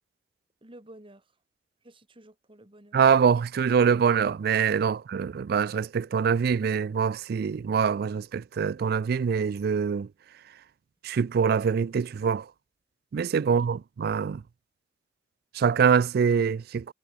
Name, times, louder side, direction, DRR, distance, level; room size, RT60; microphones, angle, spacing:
voice 1, 0.6-1.3 1.8-3.0 13.4-13.8, right 1 dB, 30° right, 2.4 m, -52 dB
voice 2, 2.9-10.1 11.0-12.5 13.1-14.4 15.5-16.9, right 6 dB, 60° right, 0.3 m, -24 dB
head